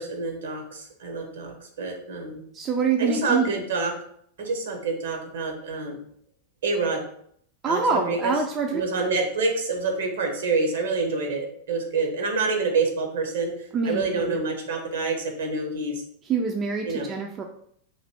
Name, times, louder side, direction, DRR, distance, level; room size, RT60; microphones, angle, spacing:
voice 1, 0.0-2.4 3.0-3.9 4.4-6.0 6.6-7.0 7.7-8.3 8.7-15.9 16.8-17.1, right 3 dB, 60° right, 3 dB, 0.9 m, -27 dB
voice 2, 2.5-3.5 7.6-8.8 13.7-14.4 16.3-17.4, right 5 dB, 25° right, 2 dB, 0.4 m, -25 dB
3.1 x 2.6 x 4.3 m, 0.66 s
figure-of-eight pair, 90°, 0 cm